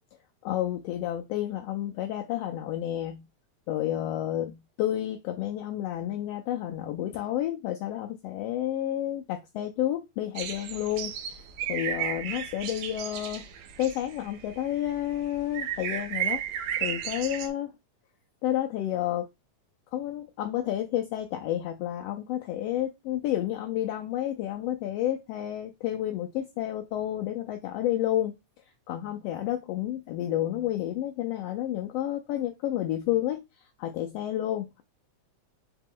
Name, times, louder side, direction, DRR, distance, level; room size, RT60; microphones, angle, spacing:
voice 1, 0.4-3.3 3.7-11.1 11.7-13.4 13.8-16.4 16.8-17.7 18.4-19.3 19.9-28.3 28.9-33.4 33.8-34.8, left 12 dB, 85° left, 1.4 m, -30 dB
sound 1, 10.4-17.5, right 9 dB, 75° right, 1.8 m, -34 dB
4.9 x 2.9 x 3.7 m
omnidirectional pair, 3.3 m